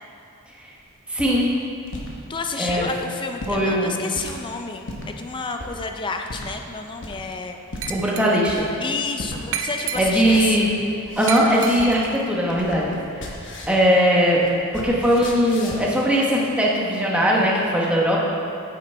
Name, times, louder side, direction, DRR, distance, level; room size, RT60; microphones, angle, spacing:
sound 1, 0.9-2.1 2.6-2.9 3.3-3.6 4.1-4.4 4.8-5.1 5.6-5.8 6.3-6.5 7.0-7.3 7.7-7.9 8.5-8.8 9.2-9.4 9.7-12.1 12.4-13.8 14.1-15.9, left 1 dB, 55° left, 1.1 m, -36 dB
voice 1, 1.1-1.5 2.6-2.8 3.5-4.0 7.9-8.7 10.0-10.7 11.2-13.3 13.7-14.4 14.7-18.2, equal, 5° right, -4 dB, 1.1 m, -20 dB
voice 2, 2.3-7.6 8.8-10.6, left 4 dB, 20° left, 4 dB, 0.4 m, -30 dB
Glass, 7.8-8.6 9.5-10.5 11.3-12.2, right 7 dB, 65° right, 0.5 m, -31 dB
9.2 x 8.0 x 3.4 m, 2.7 s
head